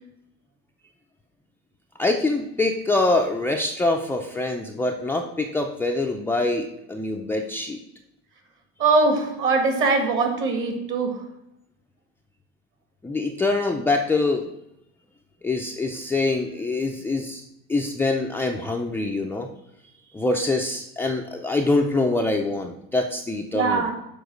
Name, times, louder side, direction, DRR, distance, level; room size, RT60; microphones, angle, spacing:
voice 1, 2.0-7.8 13.0-14.5 15.4-17.4 17.7-19.5 20.1-23.9, left 2 dB, 10° left, 1 dB, 0.4 m, -24 dB
voice 2, 8.8-11.1 23.5-23.9, right 3 dB, 45° right, 4 dB, 1.9 m, -21 dB
7.0 x 4.6 x 6.3 m, 0.83 s
cardioid pair, 135°, 29 cm